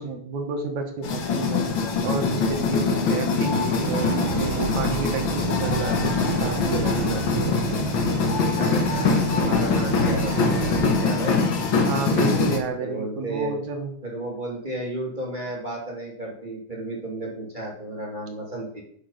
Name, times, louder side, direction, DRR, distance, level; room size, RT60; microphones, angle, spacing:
voice 1, 0.0-1.6 2.0-7.6 11.8-13.9, right 4 dB, 60° right, 4 dB, 2.4 m, -30 dB
sound 1, 1.0-12.6, left 4 dB, 85° left, 1.1 m, -23 dB
sound 2, 3.8-10.9, right 10 dB, 80° right, 1.6 m, -31 dB
voice 2, 8.6-11.4 12.8-13.6 14.0-18.8, right 1 dB, 15° right, -3 dB, 2.3 m, -33 dB
10.0 x 5.6 x 5.6 m, 0.62 s
omnidirectional pair, 4.1 m